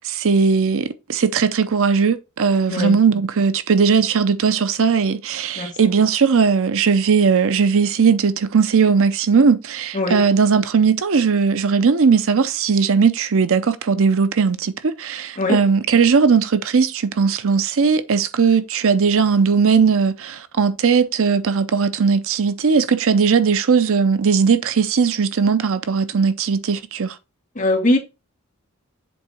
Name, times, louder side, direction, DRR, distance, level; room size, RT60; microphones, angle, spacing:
voice 1, 0.0-27.2, right 5 dB, 65° right, 0.6 m, -18 dB
voice 2, 27.6-28.0, left 1 dB, 35° left, 1.7 m, -19 dB
7.8 x 3.6 x 4.3 m
head